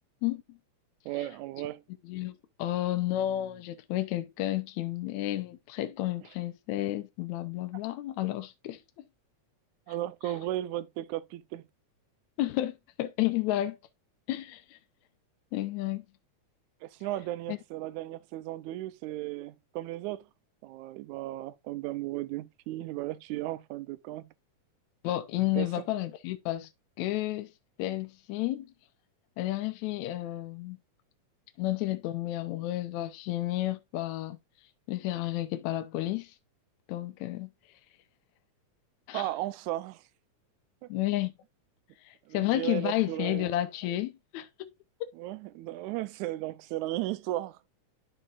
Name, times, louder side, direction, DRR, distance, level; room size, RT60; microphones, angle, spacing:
voice 1, 0.2-0.6 2.1-8.8 12.4-13.8 14.3-14.8 15.5-16.0 17.5-17.6 25.0-26.7 27.0-27.5 27.8-28.7 29.4-30.8 31.6-34.4 34.9-36.3 36.9-37.5 39.1-39.3 40.9-41.4 42.1-44.7 45.0-45.1, left 15 dB, 75° left, 2.0 m, -31 dB
voice 2, 1.1-1.8 9.9-11.6 16.8-20.3 20.6-24.3 25.6-25.7 39.1-40.0 40.8-40.9 42.3-43.5 45.2-47.6, right 15 dB, 80° right, 1.9 m, -35 dB
12.0 x 4.9 x 2.4 m
omnidirectional pair, 3.6 m